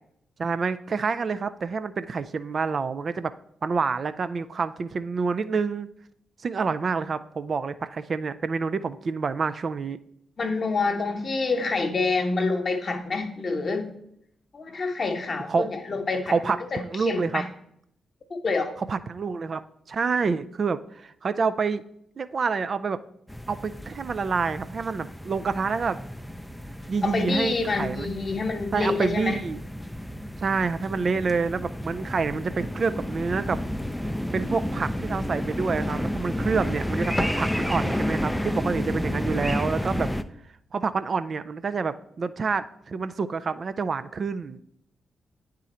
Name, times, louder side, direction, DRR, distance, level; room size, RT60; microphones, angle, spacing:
voice 1, 0.4-3.3 3.6-5.9 6.4-10.0 15.5-15.7 16.3-17.4 18.8-21.8 22.2-23.0 23.5-26.0 26.9-28.1 28.7-29.6 30.4-33.6 34.3-40.1 40.7-44.6, right 5 dB, 55° right, 13 dB, 0.4 m, -27 dB
voice 2, 10.4-13.9 14.5-16.3 16.7-17.5 18.3-18.7 27.0-29.4, left 3 dB, 50° left, 5 dB, 1.0 m, -27 dB
sound 1, 23.3-40.2, equal, 5° left, 0.5 m, -31 dB
9.0 x 3.8 x 4.3 m, 0.72 s
hypercardioid pair, 40°, 0 cm